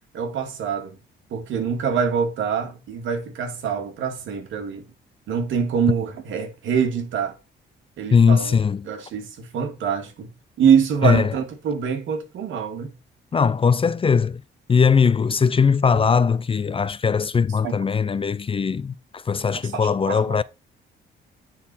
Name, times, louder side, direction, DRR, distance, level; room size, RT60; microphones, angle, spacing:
voice 1, 0.1-1.0 1.3-4.9 5.3-7.4 8.0-8.6 8.8-10.3 10.6-12.9 17.6-17.8 19.6-20.4, right 7 dB, 80° right, 2.0 m, -24 dB
voice 2, 8.1-8.9 11.0-11.3 13.3-14.4 14.7-20.4, left 6 dB, 25° left, 0.4 m, -20 dB
9.7 x 4.1 x 4.2 m
cardioid pair, 90°, 20 cm